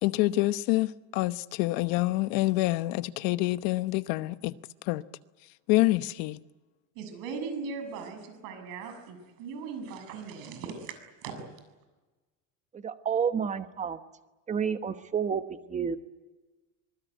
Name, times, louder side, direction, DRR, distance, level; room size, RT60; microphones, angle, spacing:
voice 1, 0.0-4.6 4.8-5.0 5.7-6.4, left 19 dB, 65° left, 1.0 m, -27 dB
voice 2, 7.0-11.4, right 5 dB, 60° right, 7.1 m, -39 dB
voice 3, 12.7-14.0 14.5-16.0, right 7 dB, 20° right, 1.1 m, -30 dB
25.5 x 20.0 x 9.3 m
cardioid pair, 155°, 38 cm